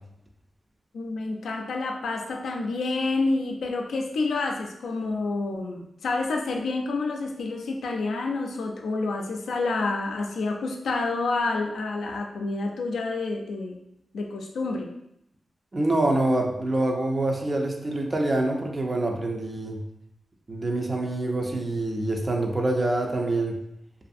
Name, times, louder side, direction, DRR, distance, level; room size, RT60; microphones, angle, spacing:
voice 1, 0.9-13.8 14.1-14.9, left 3 dB, 85° left, 2 dB, 0.3 m, -28 dB
voice 2, 15.7-19.8 20.5-23.6, right 2 dB, 40° right, 2 dB, 0.5 m, -26 dB
2.5 x 2.4 x 2.5 m, 0.78 s
cardioid pair, 50°, 0 cm